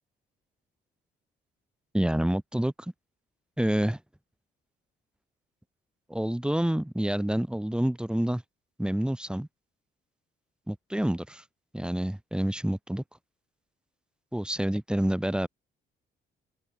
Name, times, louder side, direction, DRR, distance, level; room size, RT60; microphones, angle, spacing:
voice 1, 1.9-2.7 3.6-4.0 6.1-8.4 8.8-9.5 10.7-11.4 11.7-13.0 14.3-15.5, right 1 dB, 5° right, 1.4 m, -28 dB
open air
cardioid pair, 90°, 20 cm